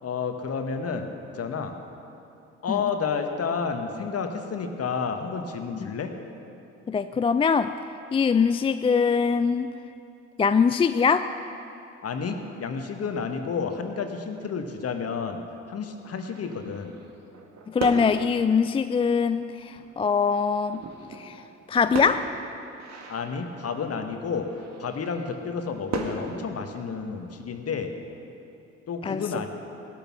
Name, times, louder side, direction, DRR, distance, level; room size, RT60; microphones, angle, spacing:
voice 1, 0.0-1.8 2.6-6.1 12.0-15.4 15.7-16.9 23.1-24.5 24.8-27.9 28.9-29.5, left 5 dB, 40° left, 6 dB, 1.6 m, -30 dB
voice 2, 6.9-7.7 8.1-9.7 10.4-11.3 17.7-20.8 21.1-21.4 21.7-22.3 29.0-29.2, left 5 dB, 15° left, 11 dB, 0.4 m, -23 dB
sound 1, 16.1-18.6 19.2-19.3 19.6-27.4, right 4 dB, 45° right, 1.8 m, -38 dB
17.0 x 12.0 x 6.1 m, 2.8 s
figure-of-eight pair, 45°, 36 cm